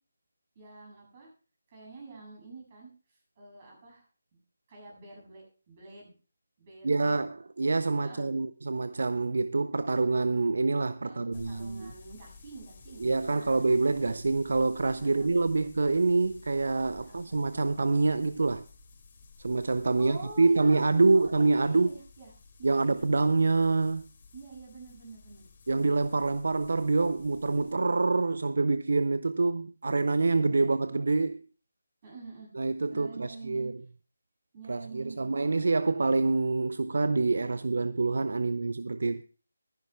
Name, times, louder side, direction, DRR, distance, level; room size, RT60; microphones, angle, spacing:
voice 1, 0.5-1.3 1.7-4.0 4.7-6.1 6.6-7.2 8.0-8.3 11.0-14.1 15.0-15.7 17.0-17.5 20.0-22.3 22.6-23.0 24.3-25.5 30.5-30.7 32.0-32.5 32.9-33.7 34.5-35.5 38.4-38.5, right 3 dB, 30° right, 7.5 m, -47 dB
voice 2, 6.8-11.9 13.0-18.6 19.4-21.9 22.6-24.1 25.7-31.4 32.5-33.7 34.7-39.2, right 3 dB, 60° right, 0.5 m, -26 dB
sound 1, 11.3-27.7, left 4 dB, 35° left, 3.1 m, -54 dB
23.5 x 10.5 x 2.3 m
figure-of-eight pair, 155°, 0 cm